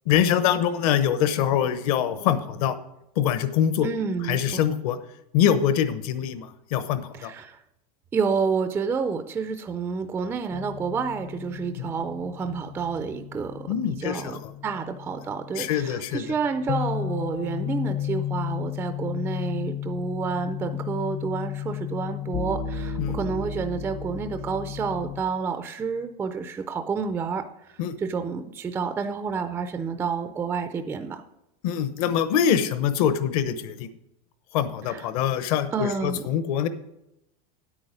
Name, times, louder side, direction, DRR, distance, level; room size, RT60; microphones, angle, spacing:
voice 1, 0.1-2.8 3.2-3.9 4.3-5.0 5.3-7.3 11.8-11.9 13.7-14.5 15.6-16.2 23.0-23.2 27.8-27.9 31.6-33.9 34.5-36.7, left 9 dB, 60° left, 12 dB, 1.0 m, -24 dB
voice 2, 3.8-4.6 7.2-7.6 8.1-13.6 14.0-27.4 28.0-31.2 34.9-35.0 35.7-36.2, right 5 dB, 10° right, 9 dB, 0.3 m, -29 dB
sound 1, 10.5-25.2, left 9 dB, 40° left, 0.6 m, -34 dB
9.7 x 8.8 x 5.0 m, 0.85 s
supercardioid pair, 170°, 21 cm